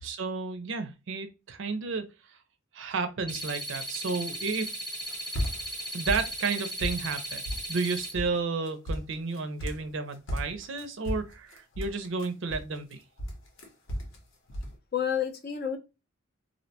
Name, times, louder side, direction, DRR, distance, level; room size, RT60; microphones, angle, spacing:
voice 1, 0.0-2.0 2.7-4.7 5.9-7.4 7.7-13.0, right 4 dB, 60° right, 0.5 m, -32 dB
sound 1, 3.3-8.1, right 1 dB, 5° left, 0.8 m, -37 dB
sound 2, 4.9-5.8 6.1-7.1 7.5-7.9 8.1-8.4 8.7-9.9 10.3-12.9 13.2-14.2 14.5-14.7, equal, 70° left, 0.8 m, -34 dB
voice 2, 5.4-6.0 14.9-15.8, left 8 dB, 45° left, 0.4 m, -31 dB
2.6 x 2.1 x 2.7 m
head